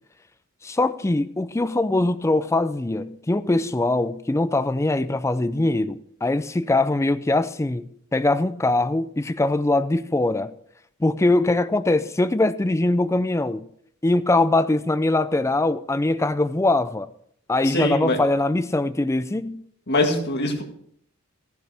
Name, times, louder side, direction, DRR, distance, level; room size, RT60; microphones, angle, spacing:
voice 1, 0.6-10.5 11.0-13.7 14.0-17.1 17.5-19.6, left 2 dB, 15° left, 0.4 m, -22 dB
voice 2, 17.6-18.2 19.9-20.6, left 2 dB, 50° left, 1.9 m, -23 dB
14.5 x 10.5 x 3.5 m
head